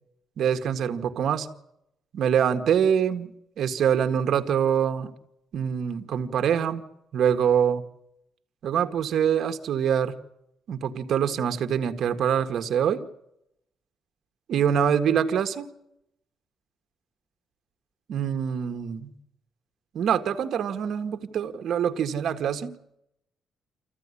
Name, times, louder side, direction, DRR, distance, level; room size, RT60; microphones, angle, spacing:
voice 1, 0.4-1.5 2.1-3.3 3.6-5.1 5.5-6.8 7.1-7.8 8.6-10.2 10.7-13.0 14.5-15.7 18.1-19.1 19.9-22.7, right 8 dB, 60° right, 7 dB, 1.8 m, -24 dB
27.5 x 15.0 x 9.9 m, 0.82 s
cardioid pair, 155°, 0 cm